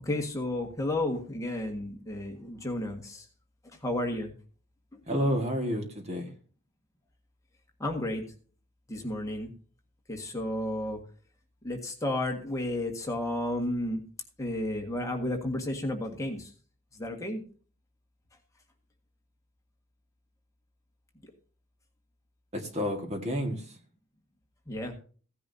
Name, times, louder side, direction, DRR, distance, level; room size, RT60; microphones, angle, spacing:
voice 1, 0.0-3.2 3.8-4.3 7.8-8.2 8.9-9.5 10.1-11.0 11.6-14.0 14.4-16.5 17.0-17.4 24.7-24.9, left 1 dB, 15° left, 1.7 m, -32 dB
voice 2, 5.1-6.3 22.5-23.8, equal, 30° right, 1.8 m, -30 dB
16.0 x 10.0 x 2.8 m
head